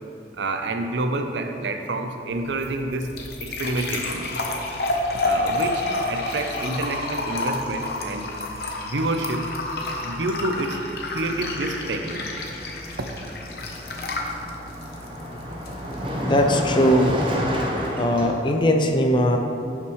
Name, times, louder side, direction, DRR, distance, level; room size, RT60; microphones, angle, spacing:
voice 1, 0.4-3.1 3.4-4.3 5.2-8.3 8.8-9.5 10.0-12.3 13.0-13.4, right 2 dB, 80° right, 5 dB, 0.6 m, -28 dB
sound 1, 2.3-17.3, left 2 dB, 60° left, 0.9 m, -30 dB
Car passing by, 10.8-11.1 11.3-18.3, equal, 30° right, 0.8 m, -30 dB
voice 2, 16.2-17.1 18.0-19.4, equal, 25° left, 4 dB, 0.5 m, -19 dB
11.0 x 5.8 x 3.1 m, 2.7 s
head